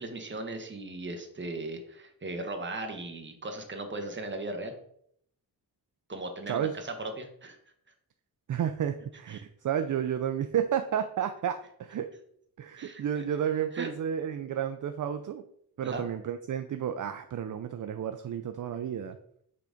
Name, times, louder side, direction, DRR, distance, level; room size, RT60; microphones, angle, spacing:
voice 1, 0.0-4.7 6.1-7.6 9.3-9.4 12.8-13.2 13.7-13.9 15.8-16.0, right 2 dB, 30° right, 5 dB, 1.0 m, -38 dB
voice 2, 6.5-6.8 8.5-12.1 12.6-15.4 15.8-19.2, right 9 dB, 55° right, 8 dB, 0.4 m, -31 dB
5.8 x 3.9 x 4.9 m, 0.69 s
wide cardioid pair, 120°, 39 cm